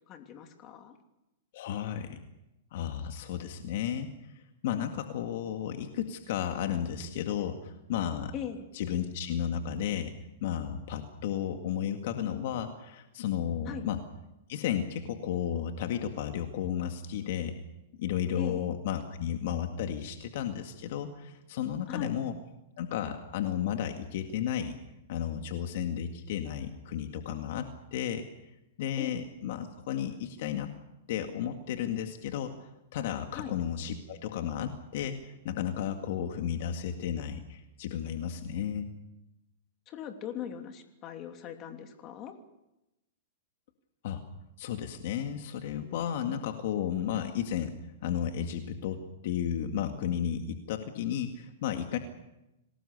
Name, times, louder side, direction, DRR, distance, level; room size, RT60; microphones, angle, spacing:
voice 1, 0.1-1.0 8.3-8.7 13.7-13.9 18.4-18.7 21.9-22.1 29.0-29.1 33.3-33.5 39.9-42.4, left 9 dB, 35° left, 5 dB, 3.0 m, -40 dB
voice 2, 1.5-2.2 2.7-4.1 4.6-8.3 8.7-10.1 10.4-14.0 14.5-17.6 18.0-22.4 22.8-24.8 25.1-28.3 28.8-30.7 31.1-32.5 32.9-38.9 44.0-44.2 44.6-47.7 48.0-52.0, left 9 dB, 60° left, 5 dB, 2.0 m, -33 dB
27.5 x 19.0 x 6.8 m, 0.91 s
hypercardioid pair, 140°, 0 cm